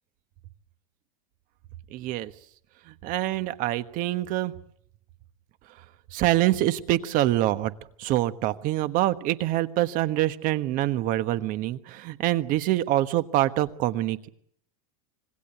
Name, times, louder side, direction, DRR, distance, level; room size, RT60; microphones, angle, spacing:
voice 1, 1.9-2.3 3.0-4.5 6.1-7.7 8.0-14.3, right 15 dB, 45° right, 12 dB, 1.4 m, -25 dB
26.0 x 19.5 x 8.3 m, 0.67 s
supercardioid pair, 130°, 19 cm